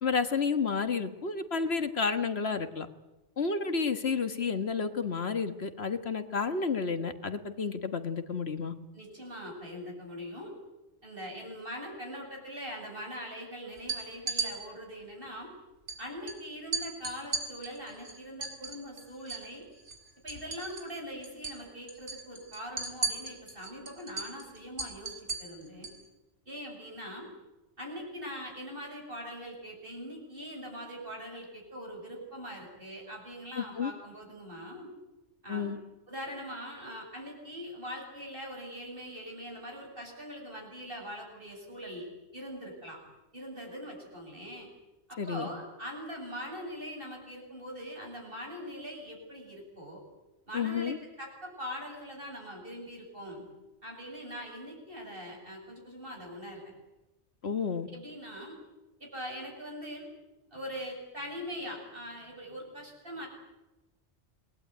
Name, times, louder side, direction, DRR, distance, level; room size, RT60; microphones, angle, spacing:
voice 1, 0.0-2.9 3.4-8.7 33.6-33.9 35.5-35.8 45.2-45.5 50.5-51.0 57.4-57.9, left 5 dB, 65° left, 9 dB, 1.7 m, -31 dB
voice 2, 8.9-10.5 11.0-15.5 16.0-19.7 20.2-25.9 26.5-27.3 27.8-34.9 35.4-35.7 36.1-42.1 42.3-43.0 43.3-44.7 45.1-50.0 50.5-53.4 53.8-56.7 57.9-58.6 59.0-60.1 60.5-63.3, equal, 50° right, 1 dB, 8.1 m, -42 dB
sound 1, 13.8-14.5 15.9-16.0 16.3-16.4 16.7-19.5 19.8-21.0 21.2-21.6 21.9-26.0, right 3 dB, 85° right, 4.2 m, -36 dB
27.0 x 19.5 x 9.5 m, 1.0 s
omnidirectional pair, 1.2 m